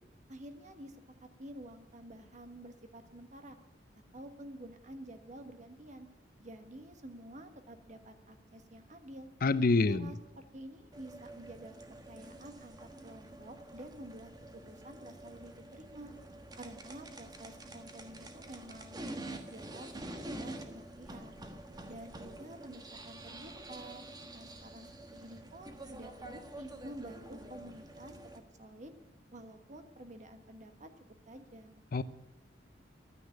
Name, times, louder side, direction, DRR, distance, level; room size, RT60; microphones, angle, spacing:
voice 1, 0.3-3.6 4.1-6.1 6.4-9.3 9.8-11.7 12.1-16.1 16.6-19.9 20.2-21.3 21.9-24.0 24.3-28.9 29.3-30.9 31.3-31.8, right 1 dB, 45° right, 7 dB, 1.4 m, -50 dB
voice 2, 9.4-10.1 31.9-32.0, left 3 dB, 55° left, 15 dB, 0.6 m, -26 dB
sound 1, 10.9-28.4, right 1 dB, 25° right, 1.3 m, -47 dB
11.5 x 9.8 x 9.1 m, 0.92 s
head